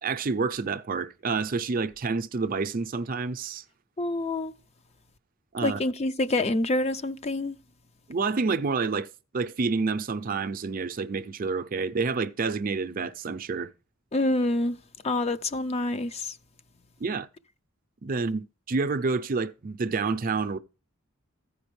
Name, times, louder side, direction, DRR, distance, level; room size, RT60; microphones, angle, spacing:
voice 1, 0.0-3.6 5.5-5.8 8.1-9.1 9.3-13.7 17.0-17.3 18.0-20.6, right 4 dB, 45° right, 0.5 m, -28 dB
voice 2, 4.0-4.5 5.6-7.5 14.1-14.8 15.0-16.3, left 2 dB, 30° left, 0.4 m, -27 dB
15.0 x 5.1 x 3.1 m
head